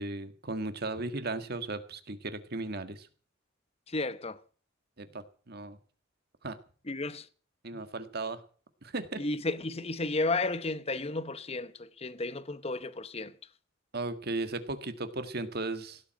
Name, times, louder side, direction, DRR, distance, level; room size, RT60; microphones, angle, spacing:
voice 1, 0.0-3.1 5.0-5.8 6.4-6.6 7.6-8.4 8.8-9.2 13.9-16.0, right 2 dB, 50° right, 1.8 m, -36 dB
voice 2, 3.9-4.4 6.9-7.3 9.2-13.3, left 2 dB, 30° left, 0.9 m, -33 dB
17.0 x 7.8 x 8.9 m
head